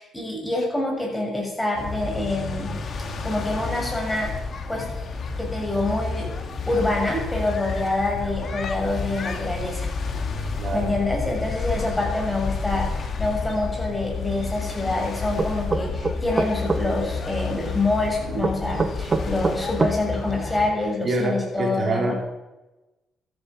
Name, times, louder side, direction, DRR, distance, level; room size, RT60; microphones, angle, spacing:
voice 1, 0.0-2.8 3.2-4.3 4.7-4.9 5.4-6.3 6.7-9.9 10.4-10.5 10.7-22.1, left 2 dB, 15° left, 0 dB, 6.6 m, -26 dB
sound 1, 1.7-20.7, left 4 dB, 50° left, 2.8 m, -30 dB
voice 2, 10.6-10.9 21.0-22.1, right 2 dB, 50° right, 1 dB, 3.8 m, -25 dB
sound 2, 15.4-16.8 18.4-20.0, right 4 dB, 35° right, 1.5 m, -23 dB
13.5 x 11.0 x 8.2 m, 1.0 s
cardioid pair, 90°, 0 cm